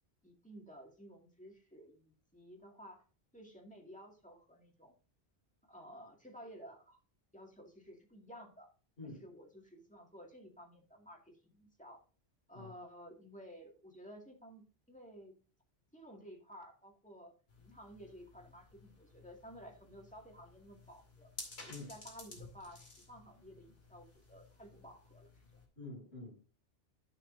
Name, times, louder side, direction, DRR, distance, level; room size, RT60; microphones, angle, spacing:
voice 1, 0.2-3.0 3.3-4.9 5.7-7.0 7.3-8.7 9.0-12.0 12.5-15.3 15.9-17.3 17.6-21.3 21.6-25.6, equal, 5° left, 2.1 m, -54 dB
sound 1, 17.5-25.7, left 2 dB, 70° left, 2.8 m, -55 dB
voice 2, 25.8-26.4, left 2 dB, 90° left, 6.2 m, -47 dB
13.5 x 6.4 x 2.6 m
omnidirectional pair, 1.1 m